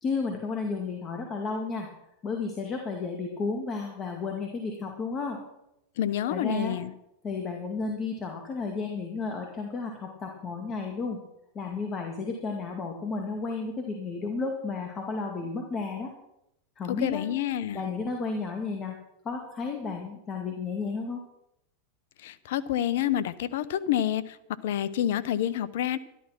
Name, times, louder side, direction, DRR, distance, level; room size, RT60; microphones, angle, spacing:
voice 1, 0.0-1.9 2.2-5.4 6.3-6.8 7.2-11.2 11.5-16.1 16.8-17.3 17.7-19.0 19.2-21.2, left 4 dB, 30° left, 2 dB, 2.4 m, -32 dB
voice 2, 6.0-6.9 17.0-17.8 22.2-24.4 24.6-26.0, left 11 dB, 70° left, 16 dB, 0.8 m, -28 dB
12.5 x 12.0 x 6.0 m, 0.84 s
hypercardioid pair, 110°, 0 cm